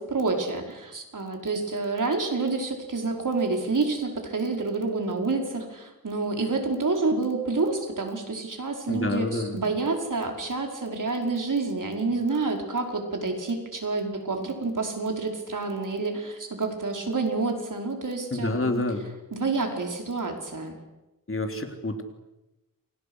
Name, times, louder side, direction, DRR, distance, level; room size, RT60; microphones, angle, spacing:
voice 1, 0.0-18.8 19.3-20.7, right 3 dB, 60° right, 2 dB, 5.3 m, -28 dB
voice 2, 8.9-9.6 18.3-19.0 21.3-22.0, left 2 dB, 40° left, 4 dB, 3.6 m, -28 dB
29.0 x 26.0 x 6.5 m, 1.0 s
wide cardioid pair, 85°, 35 cm